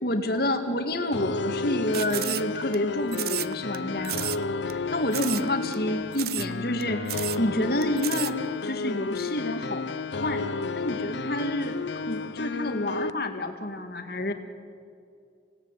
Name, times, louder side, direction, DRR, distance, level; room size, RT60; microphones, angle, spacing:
voice 1, 0.0-4.3 4.6-9.9 10.2-10.4 10.8-11.8 12.0-14.3, left 1 dB, 55° left, 6 dB, 2.2 m, -29 dB
sound 1, 1.1-13.1, left 4 dB, 85° left, 0.6 m, -32 dB
sound 2, 1.9-2.8 3.1-3.8 4.0-4.4 4.7-4.8 5.1-5.5 5.7-5.8 6.1-6.5 6.8-6.9 7.1-7.4 7.8-8.3, right 14 dB, 55° right, 0.6 m, -32 dB
26.5 x 18.0 x 9.0 m, 2.5 s
head